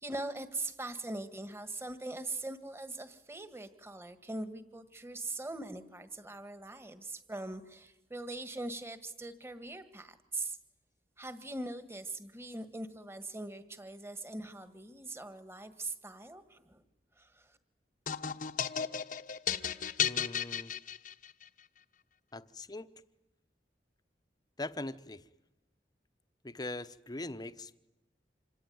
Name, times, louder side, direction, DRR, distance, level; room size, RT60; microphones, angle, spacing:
voice 1, 0.0-10.6 11.2-16.8 17.2-17.6, right 2 dB, 15° right, 10 dB, 1.7 m, -41 dB
sound 1, 18.1-21.4, left 8 dB, 50° left, 1.1 m, -34 dB
voice 2, 20.0-20.7 22.3-22.9 24.6-25.2 26.4-27.7, left 2 dB, 25° left, 11 dB, 1.0 m, -41 dB
27.0 x 23.5 x 9.5 m, 0.95 s
head